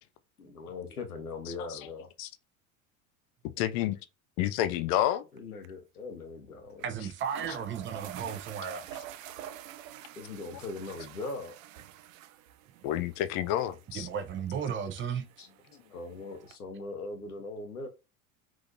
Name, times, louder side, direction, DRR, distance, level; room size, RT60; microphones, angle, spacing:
voice 1, 0.4-2.1 5.3-6.8 8.9-9.0 10.2-11.6 15.4-17.9, left 3 dB, 90° left, 0.7 m, -40 dB
voice 2, 3.6-4.0 4.4-5.2 12.8-14.1, left 12 dB, 45° left, 0.5 m, -29 dB
sound 1, 5.1-5.4 5.6-5.7 6.8-6.9 7.2-16.6, right 11 dB, 65° right, 0.5 m, -48 dB
voice 3, 6.8-9.0 13.9-15.3, right 7 dB, 25° right, 0.7 m, -35 dB
3.5 x 2.7 x 2.6 m
figure-of-eight pair, 70°, 43 cm